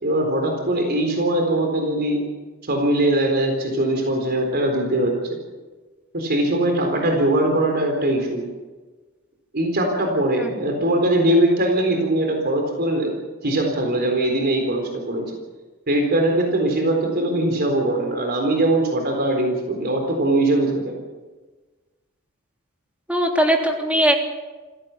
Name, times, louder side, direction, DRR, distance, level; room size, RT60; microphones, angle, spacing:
voice 1, 0.0-2.3 2.7-5.4 6.1-8.4 9.5-13.1 13.4-15.3 15.9-21.0, right 1 dB, 50° right, 3 dB, 4.0 m, -21 dB
voice 2, 10.4-10.7 23.1-24.1, equal, 5° right, 2 dB, 3.4 m, -20 dB
28.0 x 17.0 x 7.3 m, 1.3 s
head